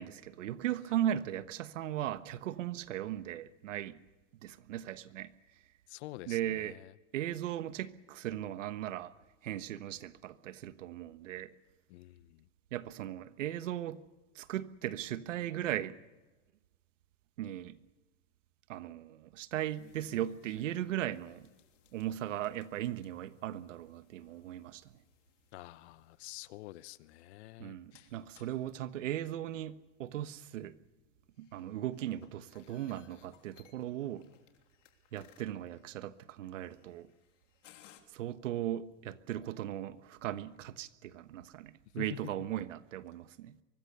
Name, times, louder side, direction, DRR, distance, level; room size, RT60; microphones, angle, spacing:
voice 1, 0.0-4.0 4.4-5.3 6.3-6.8 7.1-9.1 9.4-11.5 12.7-14.0 14.3-16.0 17.4-17.8 18.7-21.5 21.9-24.9 27.6-30.8 31.4-34.3 35.1-37.1 38.1-43.6, right 12 dB, 90° right, 1.3 m, -38 dB
voice 2, 5.9-6.9 11.9-12.4 25.5-28.1 42.0-42.3, left 16 dB, 60° left, 1.0 m, -47 dB
sound 1, 19.7-38.0, left 11 dB, 80° left, 3.2 m, -65 dB
24.0 x 20.0 x 6.8 m
supercardioid pair, 140°, 37 cm